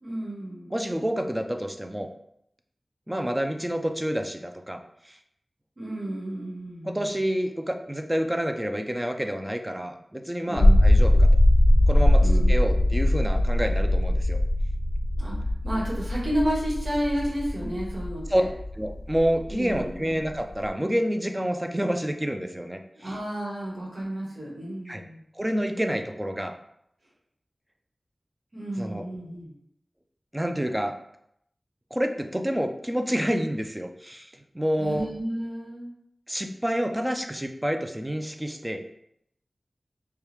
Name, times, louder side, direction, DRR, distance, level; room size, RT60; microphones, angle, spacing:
voice 1, 0.0-0.7 5.8-7.1 10.4-10.8 12.2-12.7 15.2-15.3 15.6-18.5 19.5-20.0 23.0-25.2 28.5-29.5 34.8-35.9, equal, 65° right, -4 dB, 1.4 m, -31 dB
voice 2, 0.7-2.1 3.1-4.8 5.0-5.2 6.8-11.3 11.9-14.4 18.3-18.4 18.8-23.1 24.9-25.0 25.4-26.5 28.8-29.0 30.3-30.9 31.9-34.3 34.5-35.1 36.3-38.8, equal, 15° right, 4 dB, 0.5 m, -28 dB
sound 1, 10.6-20.7, left 1 dB, 50° left, 0.5 m, -21 dB
4.6 x 2.3 x 3.3 m, 0.74 s
wide cardioid pair, 55°, 0 cm